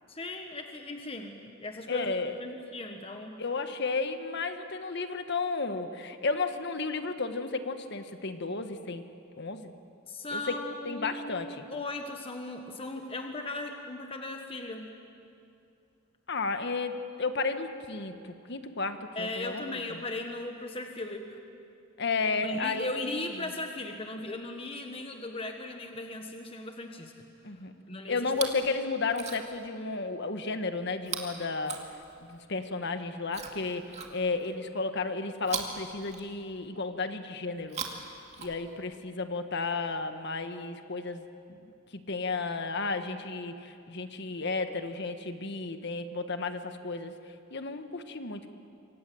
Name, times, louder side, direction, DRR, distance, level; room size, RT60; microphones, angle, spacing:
voice 1, 0.1-3.4 10.1-14.9 19.1-21.4 22.4-27.1 27.9-28.3, left 2 dB, 25° left, 4 dB, 1.4 m, -37 dB
voice 2, 1.9-2.4 3.4-9.1 9.4-9.7 10.3-10.5 10.8-11.6 16.3-20.0 22.0-22.8 27.4-27.7 28.1-31.8 32.2-37.8 38.4-47.1 47.5-48.5, left 3 dB, 55° left, 8 dB, 1.5 m, -33 dB
Chewing mastication, 28.2-28.7 29.0-29.7 31.0-32.4 33.3-34.5 35.4-36.7 37.6-39.0 39.9-40.0, right 5 dB, 30° right, 2.3 m, -40 dB
28.0 x 24.5 x 7.9 m, 2.6 s
head